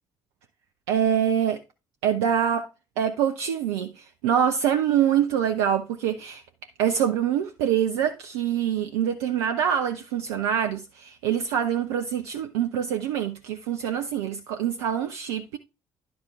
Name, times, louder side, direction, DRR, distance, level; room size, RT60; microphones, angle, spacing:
voice 1, 0.9-1.6 2.0-2.7 3.0-6.4 6.8-15.6, right 9 dB, 70° right, 0.6 m, -25 dB
11.0 x 5.1 x 3.5 m
figure-of-eight pair, 45°, 14 cm